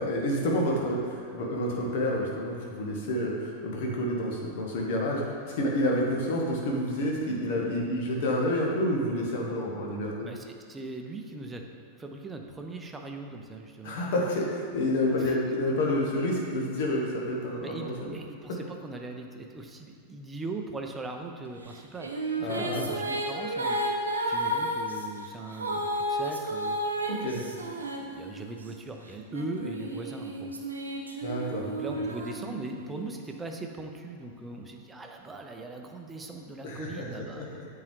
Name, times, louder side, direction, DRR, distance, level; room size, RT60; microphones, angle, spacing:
voice 1, 0.0-10.3 13.8-18.2 18.5-18.6 22.4-22.9 27.1-27.4 31.2-31.7 36.6-37.7, left 1 dB, 50° left, -1 dB, 1.1 m, -29 dB
voice 2, 10.3-11.7 12.0-14.0 15.2-15.4 17.6-23.8 24.2-27.0 27.6-30.5 31.6-37.6, right 2 dB, 15° right, 3 dB, 0.6 m, -40 dB
sound 1, 21.7-28.7 29.3-33.0, right 1 dB, 75° right, 0.5 m, -32 dB
8.5 x 3.8 x 3.2 m, 2.4 s
figure-of-eight pair, 90°, 0 cm